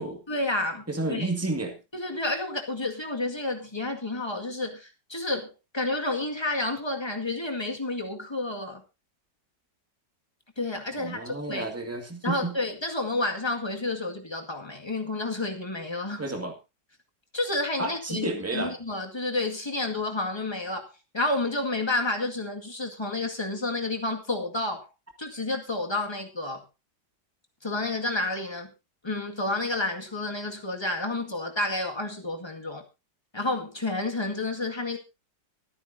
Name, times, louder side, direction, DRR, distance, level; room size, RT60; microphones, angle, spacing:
voice 1, 0.3-1.3 1.9-8.8 10.6-11.7 12.2-16.3 17.3-24.9 25.2-26.6 27.6-28.7 29.0-32.8 33.3-35.0, left 2 dB, 15° left, 3 dB, 2.0 m, -30 dB
voice 2, 0.9-1.8 11.0-12.5 16.2-16.5 17.8-18.7, right 2 dB, 10° right, 4 dB, 2.1 m, -31 dB
24.5 x 9.5 x 2.7 m, 0.27 s
omnidirectional pair, 1.9 m